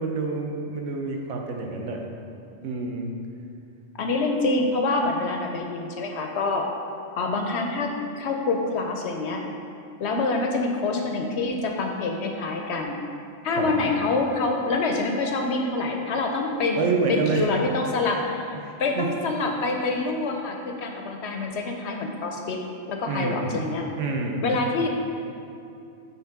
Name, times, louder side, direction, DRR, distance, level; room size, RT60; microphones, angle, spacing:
voice 1, 0.0-2.0 2.6-3.1 13.6-13.7 16.8-17.5 18.6-19.1 23.1-23.6 24.0-24.5, right 4 dB, 70° right, 1 dB, 1.0 m, -27 dB
voice 2, 4.0-6.7 7.2-7.9 8.2-9.4 10.0-13.0 13.4-16.8 17.1-22.6 22.9-23.8 24.4-25.0, left 3 dB, 65° left, 2 dB, 0.7 m, -26 dB
5.5 x 3.6 x 5.7 m, 2.6 s
omnidirectional pair, 1.4 m